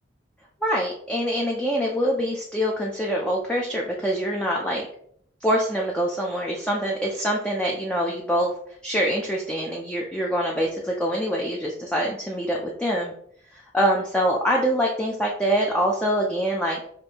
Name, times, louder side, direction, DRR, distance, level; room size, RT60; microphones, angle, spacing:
voice 1, 0.6-4.8 5.4-8.5 8.8-13.1 13.5-16.8, equal, 5° left, -2 dB, 0.4 m, -25 dB
5.1 x 2.6 x 2.8 m, 0.65 s
head